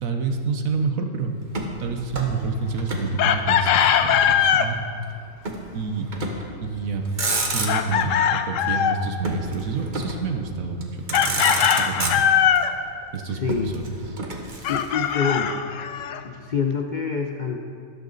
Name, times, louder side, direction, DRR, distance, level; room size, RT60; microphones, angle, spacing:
voice 1, 0.0-1.3 1.8-4.8 5.7-6.1 6.6-12.2 13.1-14.0, right 4 dB, 65° right, 5 dB, 1.4 m, -28 dB
Motor vehicle (road), 1.5-3.1 3.4-4.5 5.4-5.7 6.1-6.6 7.0-8.0 9.2-10.3 10.8-10.9 11.1-12.6 13.5-15.1, right 3 dB, 35° right, 1.2 m, -30 dB
Chicken rooster, 3.2-4.7 7.7-9.0 11.1-12.7 14.6-16.2, left 8 dB, 70° left, 0.9 m, -21 dB
voice 2, 13.3-13.8 14.7-15.5 16.2-17.6, left 5 dB, 45° left, 2 dB, 0.6 m, -26 dB
13.0 x 12.0 x 4.0 m, 2.3 s
omnidirectional pair, 1.6 m